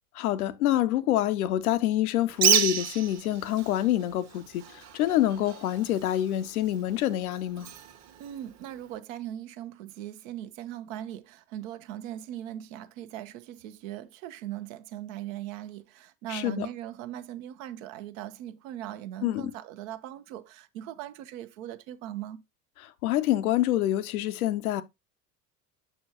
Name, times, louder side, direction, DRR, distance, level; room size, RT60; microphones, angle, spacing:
voice 1, 0.1-7.7 16.3-16.7 19.2-19.5 22.8-24.8, left 13 dB, 65° left, 0.7 m, -26 dB
Bird, 2.3-9.0, right 9 dB, 35° right, 1.2 m, -31 dB
voice 2, 8.2-22.4, right 12 dB, 55° right, 0.9 m, -39 dB
7.0 x 6.2 x 2.8 m
figure-of-eight pair, 70°, 47 cm